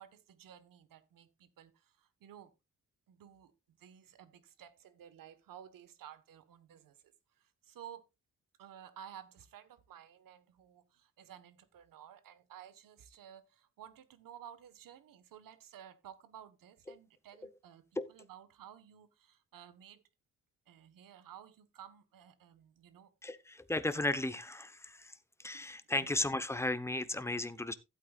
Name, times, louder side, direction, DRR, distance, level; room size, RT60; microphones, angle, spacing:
voice 1, 0.0-2.5 3.1-7.0 7.4-8.0 8.6-20.0 20.7-23.1 25.5-25.8, right 10 dB, 90° right, 1.4 m, -54 dB
voice 2, 23.2-27.7, left 2 dB, 10° left, 0.9 m, -35 dB
15.5 x 8.6 x 2.4 m
cardioid pair, 120°, 32 cm